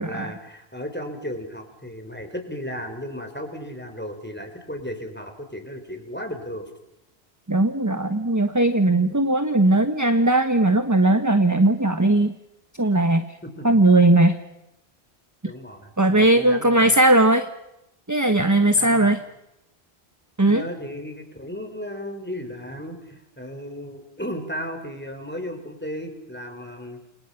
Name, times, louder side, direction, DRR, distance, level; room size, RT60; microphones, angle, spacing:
voice 1, 0.0-6.7 13.4-13.6 15.4-16.9 18.8-19.2 20.4-27.1, equal, 10° left, 5 dB, 4.8 m, -35 dB
voice 2, 7.5-12.3 12.8-13.2 13.6-14.4 16.0-17.5 18.1-19.2 20.4-20.6, right 2 dB, 15° right, 8 dB, 1.2 m, -18 dB
30.0 x 26.0 x 5.9 m, 0.87 s
omnidirectional pair, 1.1 m